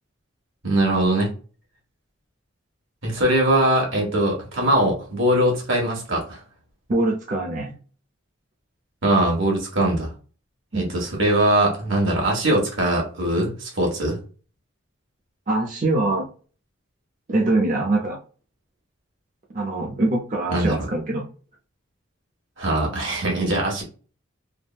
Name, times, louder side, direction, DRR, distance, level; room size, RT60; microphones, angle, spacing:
voice 1, 0.6-1.3 3.0-6.4 9.0-10.1 10.7-14.2 20.5-20.9 22.6-23.8, right 1 dB, 80° right, 0 dB, 1.3 m, -21 dB
voice 2, 6.9-7.7 10.7-10.9 15.5-16.3 17.3-18.2 19.5-21.2, right 2 dB, 40° right, -1 dB, 0.5 m, -23 dB
3.4 x 2.1 x 2.3 m, 0.38 s
head